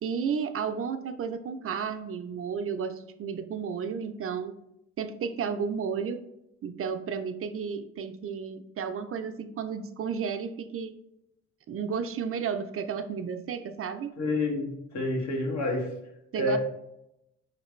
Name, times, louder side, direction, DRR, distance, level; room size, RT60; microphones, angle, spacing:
voice 1, 0.0-4.5 5.0-6.2 6.6-11.0 11.7-14.2 16.3-16.6, right 6 dB, 50° right, 8 dB, 0.5 m, -32 dB
voice 2, 14.2-15.9 16.3-16.6, left 2 dB, 65° left, 1 dB, 1.4 m, -28 dB
5.0 x 3.2 x 3.0 m, 0.86 s
cardioid pair, 90°, 30 cm